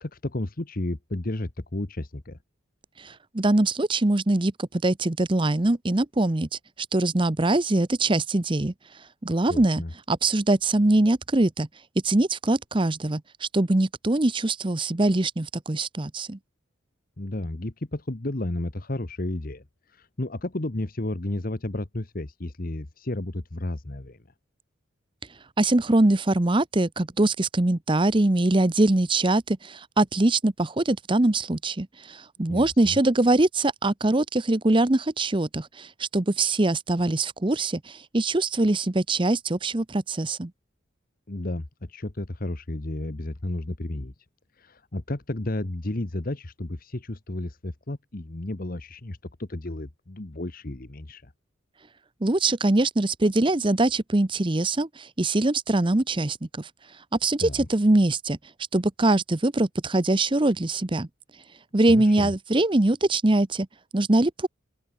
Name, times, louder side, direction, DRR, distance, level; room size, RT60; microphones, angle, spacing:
voice 1, 0.0-2.4 9.5-9.9 17.2-24.2 32.5-33.0 41.3-44.1 44.6-51.3 57.4-57.7 61.9-62.3, left 1 dB, 45° left, 1.3 m, -32 dB
voice 2, 3.0-6.5 6.9-8.7 9.2-9.8 10.1-11.7 12.0-16.4 25.6-40.5 52.2-56.7 57.2-58.4 58.7-61.1 61.7-63.7 63.9-64.5, right 2 dB, 25° right, 0.8 m, -23 dB
open air
head